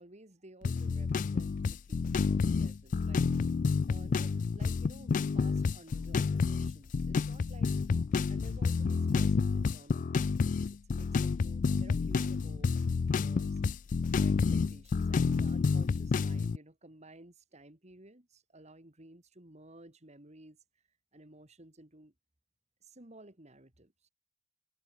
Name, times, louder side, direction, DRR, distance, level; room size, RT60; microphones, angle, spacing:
voice 1, 0.0-3.3 3.9-7.7 8.3-13.6 14.1-20.6 21.1-22.1 22.8-24.1, right 1 dB, 35° right, 2.9 m, -55 dB
sound 1, 0.6-16.6, left 5 dB, 40° left, 0.3 m, -29 dB
head